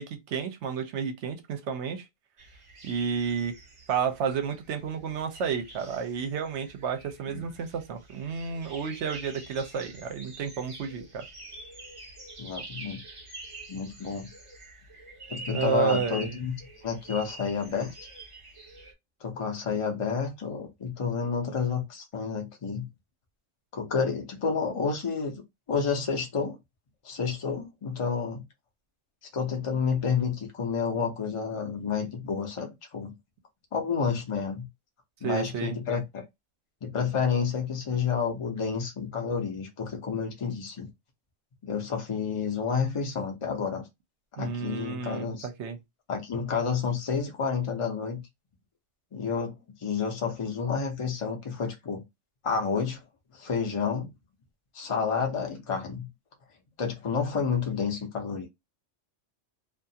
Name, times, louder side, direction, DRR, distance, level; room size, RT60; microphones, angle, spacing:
voice 1, 0.0-2.1 2.8-3.6 3.9-11.2 15.5-16.3 35.2-35.8 44.4-45.8, right 6 dB, 70° right, 0.9 m, -31 dB
sound 1, 2.4-18.9, right 2 dB, 35° right, 0.6 m, -46 dB
voice 2, 12.4-13.0 13.7-14.3 15.3-16.6 16.8-17.9 19.2-22.9 23.7-25.4 25.7-26.6 27.0-28.4 29.3-33.2 33.7-34.7 35.2-36.2 36.8-40.9 41.6-43.9 44.4-45.5 46.1-48.2 49.1-52.0 52.4-53.0 53.3-54.1 54.7-56.1 56.8-58.5, left 5 dB, 35° left, 0.6 m, -30 dB
2.5 x 2.4 x 2.7 m
omnidirectional pair, 1.3 m